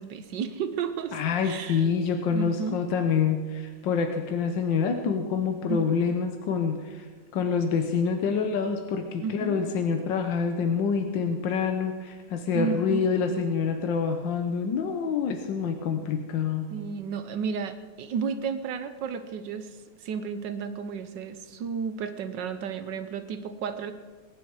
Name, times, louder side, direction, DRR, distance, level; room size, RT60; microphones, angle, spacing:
voice 1, 0.0-1.9 2.3-2.8 5.7-6.1 9.2-9.6 12.5-13.1 16.7-23.9, right 6 dB, 75° right, 10 dB, 1.5 m, -33 dB
voice 2, 1.1-7.1 7.3-16.7, left 6 dB, 85° left, 6 dB, 1.7 m, -27 dB
21.0 x 10.5 x 4.8 m, 1.4 s
omnidirectional pair, 2.0 m